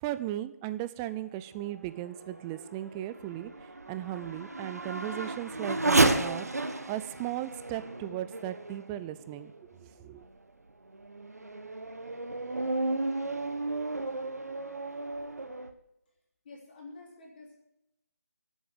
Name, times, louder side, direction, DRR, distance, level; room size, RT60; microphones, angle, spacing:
voice 1, 0.0-3.5 3.9-6.5 6.9-9.5 9.8-10.2, right 14 dB, 10° right, 13 dB, 0.4 m, -36 dB
Race car auto racing / Accelerating revving vroom, 1.7-9.6 10.2-10.3 10.9-15.7, right 2 dB, 75° right, 1.4 m, -32 dB
voice 2, 16.4-17.5, left 3 dB, 35° left, -1 dB, 3.0 m, -48 dB
11.0 x 9.0 x 8.7 m, 0.87 s
figure-of-eight pair, 155°, 9 cm